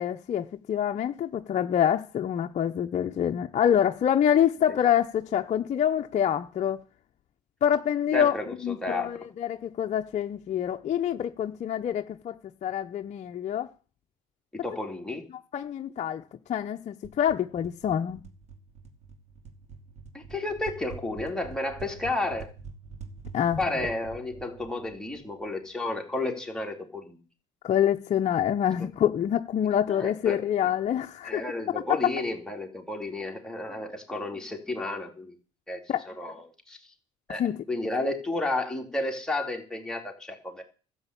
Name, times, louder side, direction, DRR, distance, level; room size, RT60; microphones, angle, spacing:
voice 1, 0.0-6.8 7.6-8.4 8.6-12.4 12.6-13.7 15.5-16.2 16.5-18.2 23.3-23.6 27.6-31.4 31.9-32.0 35.9-36.0 37.4-37.6, left 9 dB, 45° left, 0.8 m, -26 dB
voice 2, 8.1-9.1 14.5-15.3 20.1-22.5 23.6-27.2 29.9-30.4 31.2-35.3 35.7-35.8 36.1-36.8 37.3-37.4 37.7-40.6, left 2 dB, 5° left, 3.4 m, -32 dB
sound 1, 17.0-25.7, right 5 dB, 40° right, 2.4 m, -46 dB
12.5 x 8.1 x 8.4 m
cardioid pair, 95°, 17 cm